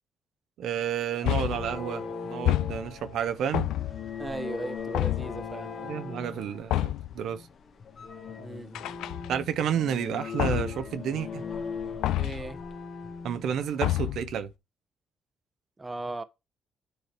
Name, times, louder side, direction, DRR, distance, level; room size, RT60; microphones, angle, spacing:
voice 1, 0.6-3.7 5.8-7.5 9.3-11.4 13.2-14.5, right 9 dB, 75° right, 0.6 m, -31 dB
sound 1, 1.2-1.8 2.5-3.1 3.5-4.2 4.9-5.4 6.7-7.2 8.7-9.5 10.4-10.9 12.0-12.5 13.8-14.3, left 15 dB, 90° left, 0.3 m, -28 dB
sound 2, 1.2-13.8, left 5 dB, 50° left, 1.2 m, -39 dB
voice 2, 4.2-5.7 8.4-9.0 12.2-12.6 15.8-16.2, right 2 dB, 20° right, 0.7 m, -37 dB
9.1 x 3.1 x 4.4 m
cardioid pair, 90°, 0 cm